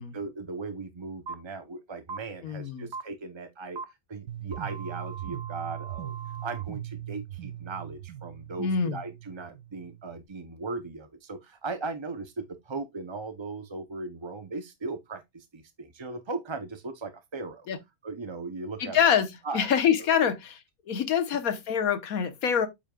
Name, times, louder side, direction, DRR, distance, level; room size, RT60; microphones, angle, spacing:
voice 1, 0.0-6.1 6.4-17.7 18.0-19.0 19.4-19.7 20.2-20.3, right 3 dB, 30° right, 0.5 m, -38 dB
sound 1, 1.3-1.4 2.1-2.2 2.9-3.0 3.8-3.9 4.5-6.6, right 5 dB, 50° right, 1.2 m, -40 dB
voice 2, 2.4-2.9 8.6-9.0 17.7-17.8 18.8-19.3 19.5-20.6 20.9-22.7, left 8 dB, 75° left, 1.4 m, -25 dB
sound 2, 4.3-10.3, right 12 dB, 75° right, 1.0 m, -40 dB
8.6 x 5.5 x 2.3 m
omnidirectional pair, 1.5 m